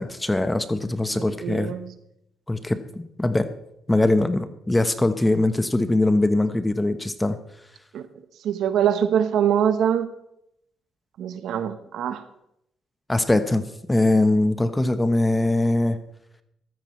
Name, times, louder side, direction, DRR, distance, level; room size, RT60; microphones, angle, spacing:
voice 1, 0.0-1.7 2.5-3.5 3.9-7.4 13.1-16.0, left 2 dB, 15° left, 10 dB, 1.1 m, -22 dB
voice 2, 1.1-1.9 7.9-8.1 8.4-10.1 11.2-12.2, right 9 dB, 80° right, 10 dB, 1.1 m, -23 dB
15.5 x 13.0 x 3.3 m, 0.79 s
cardioid pair, 90°, 0 cm